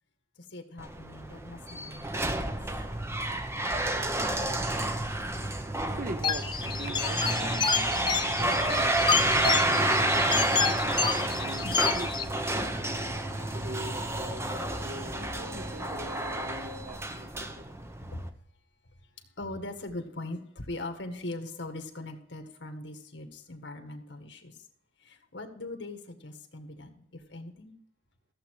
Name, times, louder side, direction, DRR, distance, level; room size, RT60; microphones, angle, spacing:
voice 1, 0.4-2.6 18.0-18.3 19.4-24.7 25.0-27.8, left 2 dB, 70° left, 1.9 m, -42 dB
sound 1, 0.8-18.3, right 1 dB, 15° right, 0.9 m, -30 dB
voice 2, 5.9-7.7 8.1-10.6 11.3-12.1 13.5-17.7, right 2 dB, 50° right, 0.6 m, -43 dB
sound 2, 6.2-12.2, left 6 dB, 25° left, 1.0 m, -29 dB
sound 3, 11.7-16.9, left 1 dB, 85° right, 3.8 m, -46 dB
15.0 x 7.7 x 4.8 m
head